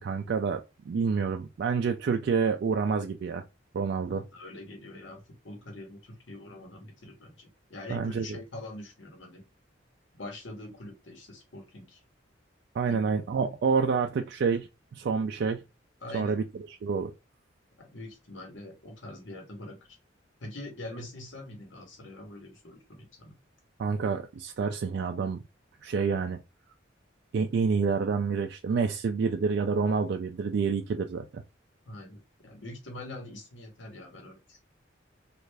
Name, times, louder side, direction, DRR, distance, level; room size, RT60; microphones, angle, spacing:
voice 1, 0.0-3.4 3.7-4.2 7.9-8.3 12.7-15.6 16.1-16.4 16.8-17.1 23.8-25.4 25.8-26.4 27.3-31.4, right 5 dB, 60° right, 0.3 m, -28 dB
voice 2, 4.1-9.4 10.1-12.0 12.8-13.3 16.0-16.4 17.8-20.0 20.4-23.3 31.9-34.6, left 1 dB, 70° left, 1.1 m, -44 dB
3.2 x 2.4 x 3.2 m
head